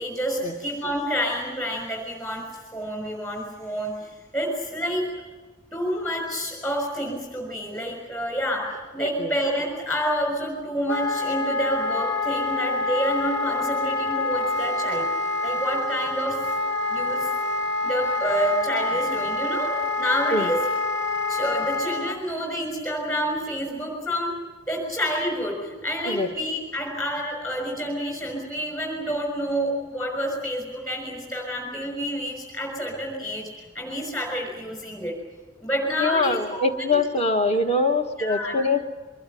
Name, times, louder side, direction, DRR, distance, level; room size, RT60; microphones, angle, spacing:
voice 1, 0.0-2.5 2.7-5.1 5.7-15.1 15.4-16.4 16.9-17.3 17.8-20.6 21.3-24.3 24.7-35.1 35.6-36.6 36.9-37.0 37.6-37.7 38.2-38.6, equal, 15° left, 0 dB, 6.1 m, -28 dB
voice 2, 9.0-9.3 20.3-20.5 26.1-26.3 36.0-38.8, left 2 dB, 35° left, 6 dB, 1.4 m, -23 dB
Wind instrument woodwind instrument, 10.9-22.2, left 2 dB, 70° left, 1.9 m, -26 dB
24.5 x 21.0 x 9.2 m, 1.3 s
head